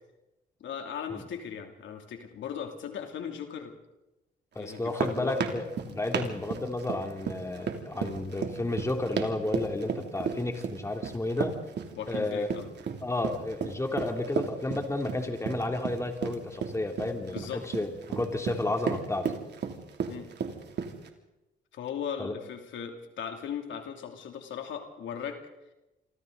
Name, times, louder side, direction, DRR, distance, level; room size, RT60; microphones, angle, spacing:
voice 1, 0.6-3.7 4.6-5.4 12.0-12.7 17.2-17.8 20.1-20.3 21.7-25.4, left 8 dB, 70° left, 4 dB, 2.9 m, -38 dB
voice 2, 4.5-11.5 12.1-12.5 13.0-19.3 22.2-22.3, left 2 dB, 15° left, 4 dB, 3.1 m, -32 dB
sound 1, 4.7-21.1, right 7 dB, 60° right, 2.9 m, -34 dB
26.5 x 26.0 x 4.0 m, 0.95 s
cardioid pair, 90°, 20 cm